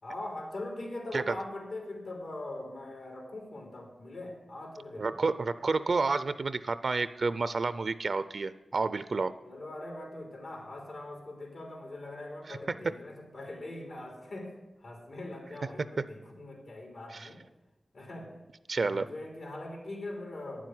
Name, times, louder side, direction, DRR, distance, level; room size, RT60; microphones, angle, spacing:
voice 1, 0.0-5.1 9.4-17.4 17.9-18.4 18.7-20.7, left 2 dB, 80° left, 0 dB, 3.4 m, -42 dB
voice 2, 5.0-9.3 18.7-19.1, right 3 dB, 60° right, 14 dB, 0.5 m, -30 dB
9.6 x 7.5 x 9.4 m, 1.0 s
wide cardioid pair, 70°, 0 cm